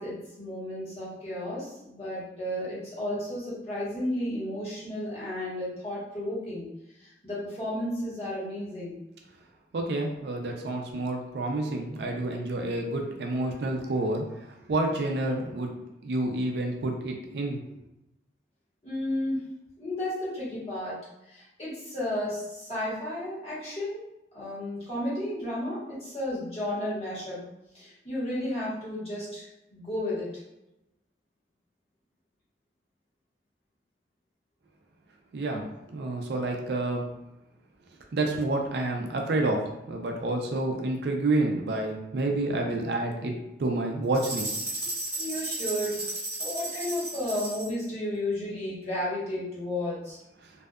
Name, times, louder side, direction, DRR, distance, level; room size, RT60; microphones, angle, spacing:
voice 1, 0.0-6.7 7.2-9.0 18.8-19.4 19.8-21.0 21.2-24.0 24.3-27.4 27.7-30.3 35.5-35.6 45.2-46.1 46.4-50.2, left 1 dB, 35° left, -8 dB, 1.1 m, -33 dB
voice 2, 9.7-14.2 14.7-15.7 16.0-17.6 35.3-35.6 35.9-37.0 38.1-43.3 43.6-44.5, right 2 dB, 65° right, 2 dB, 0.4 m, -29 dB
sound 1, 44.1-47.8, right 2 dB, 15° right, 0.9 m, -34 dB
2.6 x 2.2 x 2.3 m, 0.89 s
head